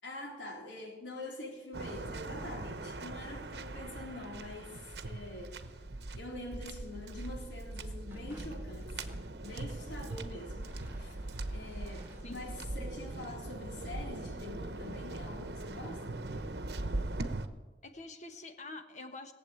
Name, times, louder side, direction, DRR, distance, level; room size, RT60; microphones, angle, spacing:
voice 1, 0.0-5.7 6.2-9.0 9.4-11.2 11.5-16.2, left 2 dB, 80° left, 3.8 m, -45 dB
Waves surf, 1.7-17.5, right 2 dB, 60° right, 1.0 m, -41 dB
sound 1, 8.1-9.4 10.5-12.7, equal, 15° right, 2.2 m, -56 dB
voice 2, 12.2-12.5 17.8-19.3, left 2 dB, 40° left, 1.3 m, -46 dB
19.5 x 7.6 x 8.7 m
head